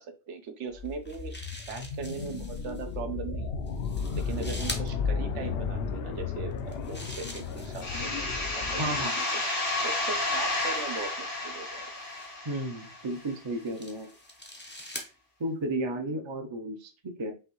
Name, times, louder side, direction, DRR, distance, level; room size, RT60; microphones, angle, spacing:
voice 1, 0.0-1.3 1.7-3.5 4.2-9.2 9.8-11.9 15.9-16.2, right 5 dB, 75° right, 7 dB, 1.0 m, -39 dB
sound 1, 0.7-9.0, left 5 dB, 65° left, 0.7 m, -34 dB
sound 2, 0.8-2.8 3.7-4.9 6.5-8.1 9.0-11.1 12.0-12.3 13.1-15.1, left 1 dB, 10° left, 0.5 m, -44 dB
sound 3, 7.8-13.3, left 2 dB, 85° left, 2.5 m, -31 dB
voice 2, 8.8-9.2 12.4-14.1 15.4-17.3, right 1 dB, 30° right, 4 dB, 0.5 m, -33 dB
5.4 x 2.7 x 3.0 m, 0.34 s
omnidirectional pair, 1.2 m